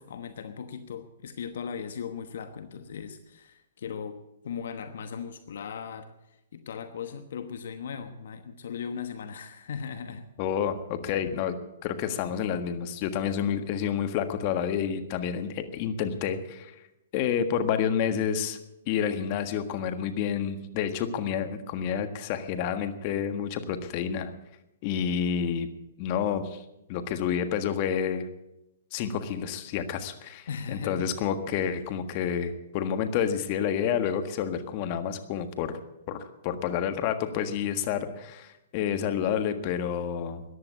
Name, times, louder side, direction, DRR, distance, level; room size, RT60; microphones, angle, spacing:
voice 1, 0.0-4.2 4.4-10.3 30.5-31.1, left 7 dB, 65° left, 9 dB, 1.1 m, -38 dB
voice 2, 10.4-11.5 11.8-16.7 17.1-18.6 18.9-24.3 24.8-25.7 26.0-26.6 26.9-28.3 28.9-35.8 36.1-40.4, left 8 dB, 40° left, 8 dB, 1.6 m, -29 dB
14.5 x 10.5 x 8.4 m, 0.89 s
hypercardioid pair, 125°, 0 cm